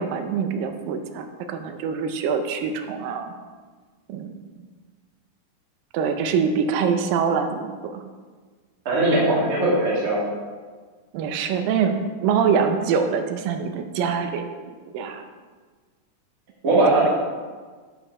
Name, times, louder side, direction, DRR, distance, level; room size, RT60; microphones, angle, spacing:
voice 1, 0.0-3.3 4.1-4.3 5.9-8.0 11.1-14.5 14.9-15.2 17.0-17.1, right 6 dB, 80° right, 7 dB, 2.3 m, -24 dB
voice 2, 8.9-10.3 16.6-17.1, right 2 dB, 30° right, -6 dB, 2.0 m, -19 dB
11.0 x 5.1 x 4.7 m, 1.5 s
omnidirectional pair, 4.1 m